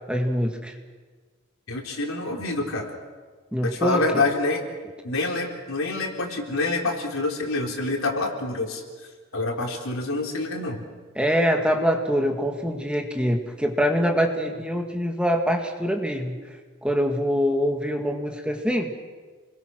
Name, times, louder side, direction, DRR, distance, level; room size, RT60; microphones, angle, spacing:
voice 1, 0.1-0.7 3.5-4.0 11.2-16.4 16.8-18.9, equal, 5° right, 3 dB, 2.0 m, -24 dB
voice 2, 1.7-2.9 3.6-4.6 5.0-8.8 9.3-10.8, left 2 dB, 85° left, 2 dB, 3.9 m, -27 dB
29.0 x 22.0 x 6.3 m, 1.4 s
head